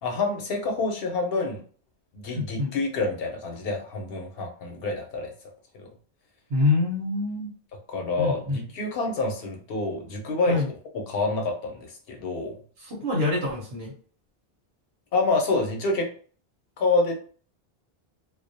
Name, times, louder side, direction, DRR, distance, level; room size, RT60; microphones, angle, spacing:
voice 1, 0.0-1.6 2.1-5.3 5.7-5.9 7.9-10.6 10.9-12.6 15.1-16.1 16.8-17.2, left 3 dB, 70° left, 3 dB, 0.8 m, -27 dB
voice 2, 2.3-2.7 6.5-7.5 8.2-8.6 10.5-10.7 12.8-13.9, left 3 dB, 80° right, -4 dB, 1.0 m, -26 dB
2.3 x 2.0 x 2.6 m, 0.43 s
omnidirectional pair, 1.0 m